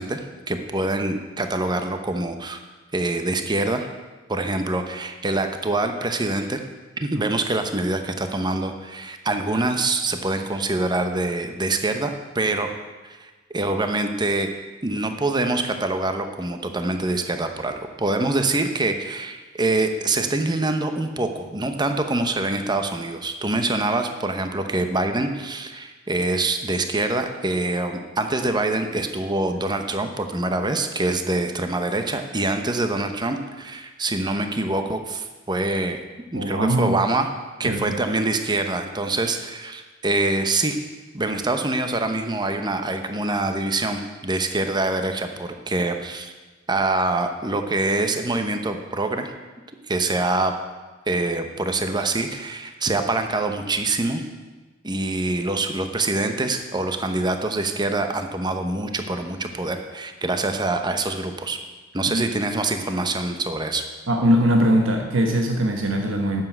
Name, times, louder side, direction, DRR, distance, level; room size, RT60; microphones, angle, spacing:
voice 1, 0.0-2.6 2.9-3.9 4.3-6.6 7.0-12.7 13.0-14.5 14.8-36.0 36.3-37.3 37.6-40.8 41.1-46.3 46.7-49.3 49.9-50.5 51.1-54.2 54.8-61.6 61.9-63.8, right 2 dB, 20° right, 6 dB, 0.9 m, -25 dB
voice 2, 36.3-37.0 37.6-38.0 62.1-62.2 64.1-66.4, equal, 75° right, 3 dB, 1.2 m, -21 dB
9.3 x 7.3 x 9.1 m, 1.2 s
head